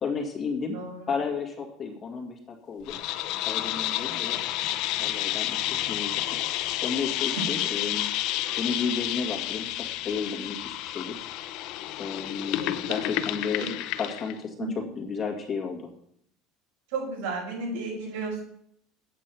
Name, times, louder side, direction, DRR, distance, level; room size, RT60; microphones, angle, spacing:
voice 1, 0.0-0.8 1.1-2.4 2.7-3.0 3.5-4.4 4.9-6.1 6.8-8.1 8.6-11.1 12.0-14.7 15.0-15.9, left 5 dB, 25° left, 1 dB, 2.1 m, -32 dB
voice 2, 0.7-1.0 7.3-7.4 8.4-8.6 12.6-13.0 14.6-14.7 16.9-18.4, right 3 dB, 85° right, -2 dB, 5.6 m, -33 dB
sound 1, 2.9-14.4, left 14 dB, 55° left, 0.6 m, -30 dB
8.7 x 8.5 x 6.0 m, 0.69 s
cardioid pair, 160°, 0 cm